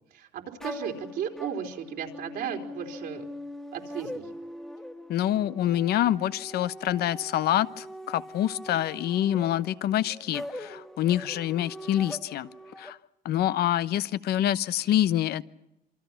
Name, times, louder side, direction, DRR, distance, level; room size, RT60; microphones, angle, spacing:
voice 1, 0.1-3.2 3.7-4.3, right 8 dB, 70° right, 2 dB, 4.0 m, -35 dB
sound 1, 0.6-12.9, left 1 dB, 5° left, 1.7 m, -42 dB
voice 2, 5.1-12.5 12.8-13.0 13.2-15.4, left 12 dB, 70° left, 14 dB, 1.0 m, -26 dB
27.5 x 24.5 x 5.9 m, 0.86 s
cardioid pair, 110°, 17 cm